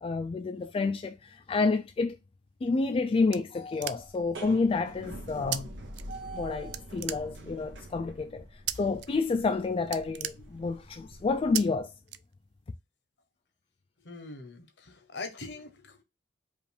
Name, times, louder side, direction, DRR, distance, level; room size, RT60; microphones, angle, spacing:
voice 1, 0.0-2.2 2.6-5.7 6.3-8.4 8.8-11.9, left 4 dB, 30° left, 0.3 m, -29 dB
sound 1, 2.6-4.3 5.5-5.6 5.9-6.5 6.7-7.7 8.7-9.1 9.4-9.5 9.8-11.0 11.5-11.6 12.1-12.7, right 13 dB, 65° right, 0.3 m, -36 dB
sound 2, 4.0-11.6, right 2 dB, 90° right, 0.9 m, -45 dB
voice 2, 14.0-16.0, left 3 dB, 70° left, 1.0 m, -42 dB
4.8 x 2.5 x 3.3 m
head